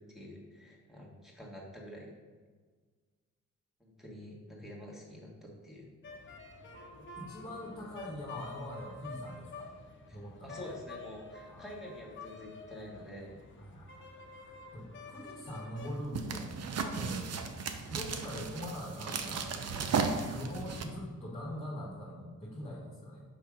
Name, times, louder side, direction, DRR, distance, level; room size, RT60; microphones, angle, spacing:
voice 1, 0.1-2.1 3.8-5.9 10.1-13.5, equal, ahead, -4 dB, 1.7 m, -48 dB
sound 1, 6.0-15.9, left 3 dB, 40° left, 0.9 m, -49 dB
voice 2, 7.1-9.7 10.1-10.7 11.4-11.7 13.6-14.1 14.3-16.5 16.8-17.3 17.9-19.9 20.3-23.2, left 1 dB, 20° left, -6 dB, 1.5 m, -43 dB
sound 2, 15.8-20.8, right 5 dB, 55° right, 0.6 m, -35 dB
5.9 x 3.3 x 5.0 m, 1.5 s
cardioid pair, 70°, 30 cm